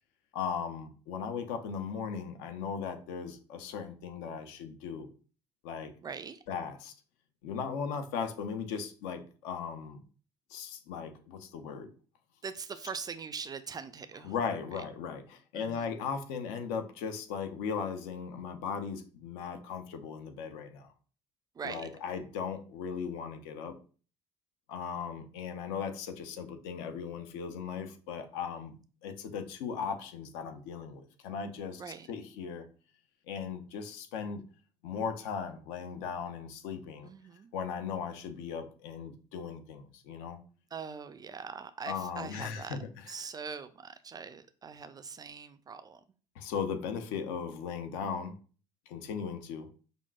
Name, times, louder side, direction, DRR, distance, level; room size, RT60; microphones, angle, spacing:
voice 1, 0.3-5.1 5.6-5.9 6.5-6.9 7.4-10.0 10.5-11.9 14.2-20.9 21.6-23.7 24.7-28.7 29.0-31.8 32.1-32.7 33.3-34.4 34.8-37.1 37.5-40.4 41.9-43.1 46.4-48.3 48.9-49.7, left 6 dB, 60° left, 0.6 m, -37 dB
voice 2, 6.0-6.4 12.4-14.3 14.7-14.8 15.5-15.9 21.6-21.9 31.8-32.1 37.0-37.5 40.7-42.8 43.1-46.0, right 6 dB, 25° right, 0.3 m, -42 dB
5.3 x 2.5 x 2.3 m
figure-of-eight pair, 55°, 17 cm